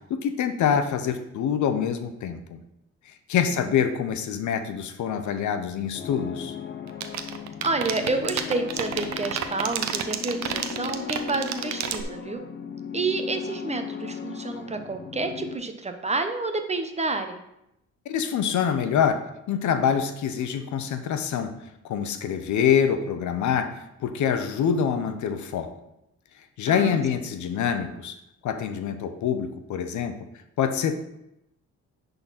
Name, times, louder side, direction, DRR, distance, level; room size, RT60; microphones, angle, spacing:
voice 1, 0.1-2.6 3.3-6.6 18.1-19.2 19.5-21.6 21.8-25.8 26.6-28.2 28.4-30.2 30.6-30.9, left 8 dB, 70° left, 9 dB, 0.8 m, -25 dB
sound 1, 5.9-15.6, left 7 dB, 40° left, 0.8 m, -37 dB
sound 2, 6.9-12.0, right 10 dB, 65° right, 0.8 m, -28 dB
voice 2, 7.6-12.4 12.9-17.4 26.7-27.0, right 3 dB, 20° right, 6 dB, 0.8 m, -29 dB
10.5 x 4.0 x 4.1 m, 0.85 s
cardioid pair, 90°, 30 cm